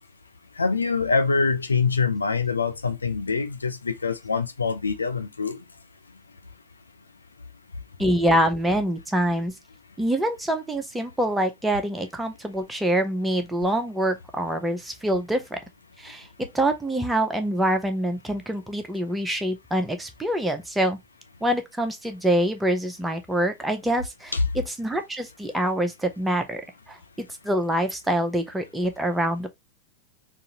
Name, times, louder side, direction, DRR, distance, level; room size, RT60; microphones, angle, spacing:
voice 1, 0.6-5.6 24.3-24.4, left 4 dB, 75° left, 0.5 m, -24 dB
voice 2, 8.0-9.5 10.0-15.6 16.0-21.0 21.4-26.6 26.9-29.5, right 1 dB, 5° right, 0.7 m, -25 dB
3.8 x 2.6 x 2.8 m
figure-of-eight pair, 90°, 0 cm